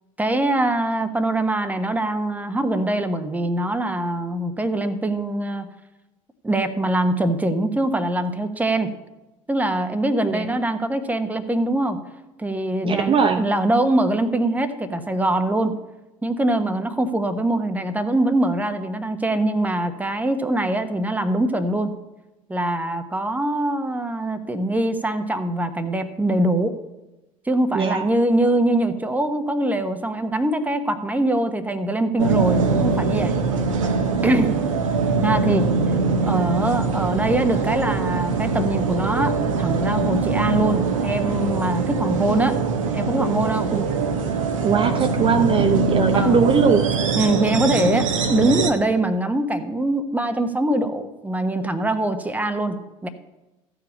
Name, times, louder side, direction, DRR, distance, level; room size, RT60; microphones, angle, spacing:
voice 1, 0.2-5.7 6.4-8.9 9.5-12.0 12.4-15.8 16.2-22.0 22.5-26.7 27.4-33.4 34.2-34.6 35.2-35.7 36.2-42.6 42.9-43.7 45.0-45.1 46.1-46.4 47.2-53.1, right 1 dB, 10° right, 9 dB, 1.1 m, -23 dB
voice 2, 12.8-13.4 27.7-28.0 43.7-43.9 44.6-46.9, right 6 dB, 30° right, 6 dB, 0.8 m, -20 dB
sound 1, 32.2-48.7, right 4 dB, 75° right, 1.1 m, -22 dB
14.5 x 4.9 x 7.2 m, 1.0 s
figure-of-eight pair, 60°, 17 cm